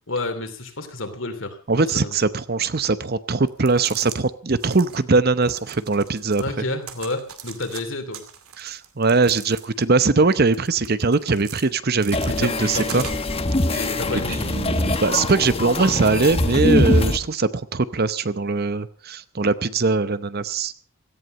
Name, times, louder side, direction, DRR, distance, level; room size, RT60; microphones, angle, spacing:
voice 1, 0.1-1.6 1.9-2.1 6.4-8.2 12.4-13.1 13.6-14.6, left 2 dB, 60° left, 7 dB, 2.9 m, -30 dB
voice 2, 1.7-6.6 8.6-13.0 13.7-13.9 14.1-20.7, right 3 dB, 45° right, 14 dB, 0.8 m, -21 dB
sound 1, 3.5-4.2 4.5-5.0 5.4-6.5 6.8-7.8 8.1-9.9 10.3-11.6 12.0-13.4, right 9 dB, 85° right, 2.3 m, -40 dB
sound 2, 12.1-17.2, left 2 dB, 25° left, 1.1 m, -23 dB
17.0 x 14.5 x 5.3 m, 0.40 s
head